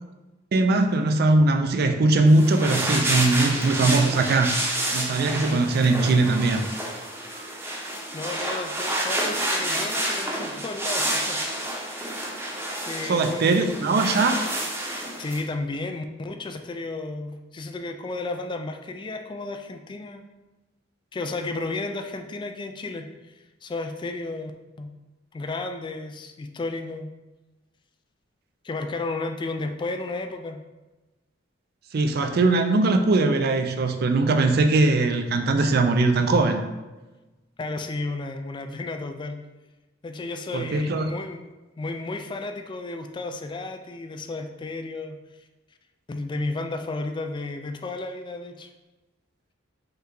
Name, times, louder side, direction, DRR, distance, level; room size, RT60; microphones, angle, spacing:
voice 1, 0.5-4.5 4.9-6.7 13.1-14.4 31.9-36.6 40.5-41.1, right 2 dB, 50° right, 7 dB, 0.4 m, -20 dB
sound 1, 2.3-15.4, right 1 dB, 10° right, 0.7 m, -29 dB
voice 2, 8.1-11.8 12.8-13.8 15.2-20.2 21.1-23.3 23.6-24.5 24.8-24.9 25.3-27.1 28.6-30.6 37.6-39.4 40.0-41.4 41.8-45.2 46.1-48.7, left 2 dB, 25° left, 6 dB, 0.3 m, -33 dB
5.4 x 2.3 x 3.8 m, 1.1 s
head